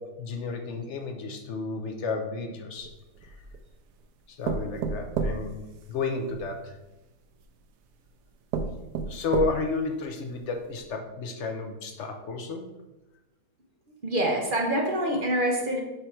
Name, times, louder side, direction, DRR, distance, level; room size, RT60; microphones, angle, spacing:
voice 1, 0.2-2.9 3.2-3.4 4.3-6.8 9.0-12.7, left 3 dB, 55° left, 4 dB, 0.9 m, -32 dB
sound 1, 2.8-3.7 4.4-6.4 7.4-7.5 8.1-8.2 8.5-9.9 10.4-10.5 10.8-10.9, right 5 dB, 85° right, 1.2 m, -31 dB
voice 2, 14.0-15.8, right 1 dB, 40° right, 1 dB, 0.9 m, -26 dB
5.4 x 4.7 x 4.4 m, 0.98 s
omnidirectional pair, 1.8 m